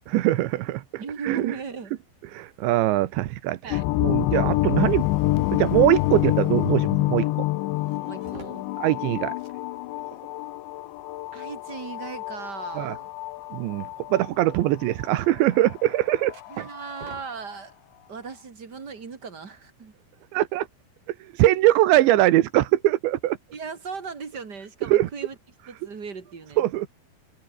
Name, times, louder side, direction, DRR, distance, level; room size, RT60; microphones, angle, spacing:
voice 1, 0.1-1.5 2.3-5.1 5.5-7.5 8.8-9.3 12.8-12.9 13.5-16.7 20.3-20.7 21.1-23.4 24.9-25.1 26.6-26.9, right 15 dB, 75° right, 3.3 m, -22 dB
voice 2, 1.0-2.0 3.6-3.9 8.0-8.7 11.3-13.1 16.5-17.8 18.1-19.9 23.5-25.4 25.7-26.6, right 5 dB, 35° right, 1.9 m, -37 dB
sound 1, 3.7-17.1, left 17 dB, 75° left, 3.1 m, -27 dB
sound 2, 7.6-18.1 18.4-20.1, right 5 dB, 50° right, 7.6 m, -53 dB
omnidirectional pair, 5.4 m